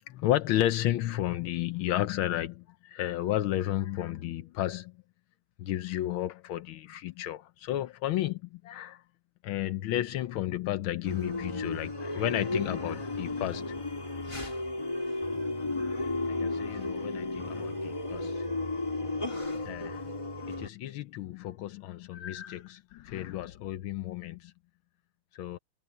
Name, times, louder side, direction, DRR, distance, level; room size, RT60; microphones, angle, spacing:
voice 1, 0.1-4.9 5.6-9.0 9.4-13.8 16.3-18.4 19.6-20.1 20.5-24.5 25.3-25.6, left 13 dB, 80° left, 1.5 m, -32 dB
sound 1, 11.0-20.7, left 2 dB, 15° left, 2.5 m, -34 dB
omnidirectional pair, 2.3 m